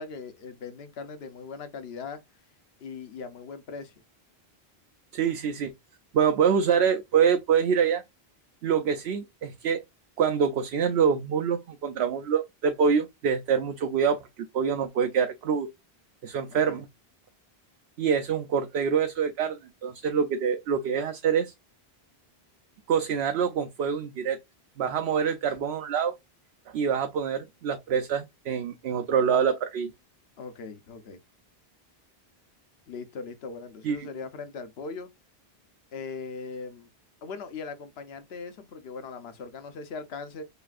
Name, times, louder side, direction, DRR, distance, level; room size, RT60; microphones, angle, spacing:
voice 1, 0.0-2.2 2.8-3.9 16.5-16.8 30.4-31.2 32.9-35.1 35.9-36.9 37.2-40.4, left 4 dB, 75° left, 1.0 m, -39 dB
voice 2, 5.1-5.7 6.1-8.0 8.6-9.8 10.2-14.2 14.5-15.7 16.2-16.9 18.0-21.5 22.9-24.4 24.8-26.1 26.7-29.9 33.8-34.1, right 7 dB, 80° right, 0.9 m, -25 dB
6.6 x 2.4 x 2.4 m
omnidirectional pair, 1.0 m